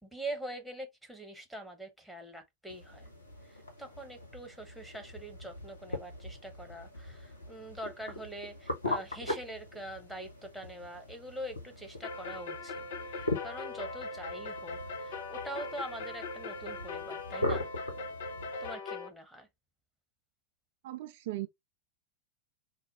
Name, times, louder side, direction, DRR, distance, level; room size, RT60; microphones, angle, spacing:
voice 1, 0.0-3.1 3.4-17.7 18.6-19.5, right 1 dB, ahead, 1.2 m, -44 dB
sound 1, 2.7-18.7, left 1 dB, 80° left, 1.3 m, -41 dB
sound 2, 12.0-19.1, left 3 dB, 55° left, 0.8 m, -40 dB
voice 2, 20.8-21.5, right 16 dB, 50° right, 0.4 m, -37 dB
4.1 x 2.3 x 4.1 m
figure-of-eight pair, 90°, 0 cm